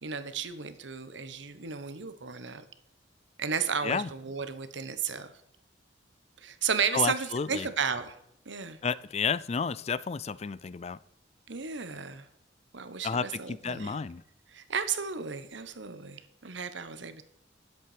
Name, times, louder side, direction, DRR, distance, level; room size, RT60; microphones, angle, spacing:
voice 1, 0.0-2.6 3.4-5.3 6.4-8.2 8.5-8.8 11.5-12.3 12.7-14.0 14.5-17.2, right 6 dB, 70° right, 1.0 m, -33 dB
voice 2, 6.9-7.7 8.8-11.0 13.0-14.2, left 5 dB, 35° left, 0.4 m, -31 dB
10.5 x 8.1 x 4.9 m
head